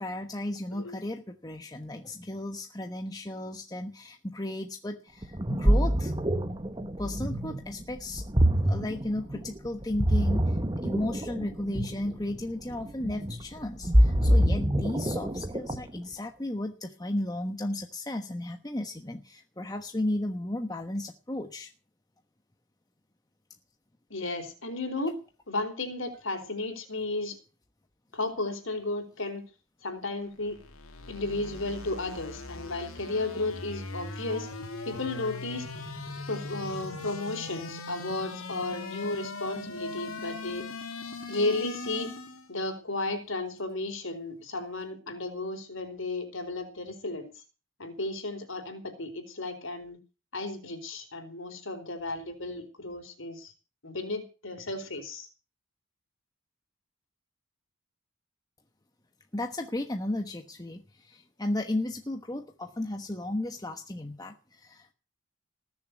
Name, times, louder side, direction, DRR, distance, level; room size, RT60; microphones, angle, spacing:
voice 1, 0.0-6.1 7.0-8.2 8.6-21.7 59.3-64.9, left 1 dB, 20° left, 5 dB, 1.2 m, -34 dB
Ocean, 5.2-16.0, equal, 20° right, 1.3 m, -26 dB
voice 2, 24.1-25.2 25.5-27.3 28.1-29.4 29.8-30.6 31.1-34.5 34.8-35.7 36.3-40.6 41.3-42.1 42.5-47.3 47.8-50.0 50.3-53.5 53.8-55.3, left 2 dB, 70° left, 6 dB, 4.5 m, -34 dB
sound 1, 30.3-42.5, left 3 dB, 90° left, 2.8 m, -40 dB
20.0 x 7.1 x 8.1 m, 0.33 s
head